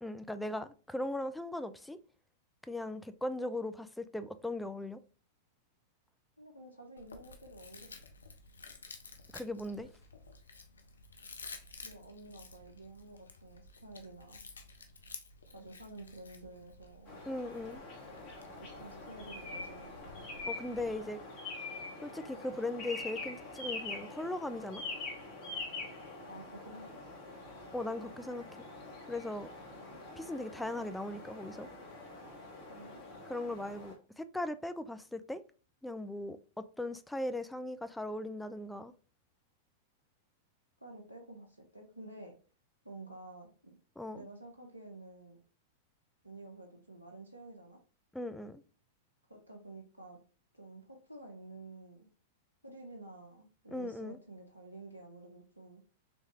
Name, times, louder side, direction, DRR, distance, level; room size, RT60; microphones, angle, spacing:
voice 1, 0.0-2.0 2.7-5.0 9.3-9.9 17.3-17.8 20.5-21.2 22.0-24.8 27.7-28.4 29.1-29.5 30.2-31.7 33.3-35.4 35.8-38.9 44.0-44.2 48.1-48.6 53.7-54.2, left 1 dB, 5° left, 0.3 m, -38 dB
voice 2, 6.4-7.9 11.8-14.4 15.5-17.1 18.6-19.9 26.2-27.0 29.7-30.0 32.7-33.0 40.8-42.3 42.8-43.8 44.1-45.4 46.2-47.8 49.3-50.2 50.5-52.1 52.6-55.8, right 2 dB, 90° right, 0.6 m, -50 dB
Chewing mastication, 7.0-21.0, left 3 dB, 80° left, 0.5 m, -53 dB
sound 1, 17.1-33.9, left 3 dB, 40° left, 1.6 m, -45 dB
3.5 x 3.0 x 2.8 m
figure-of-eight pair, 95°, 0 cm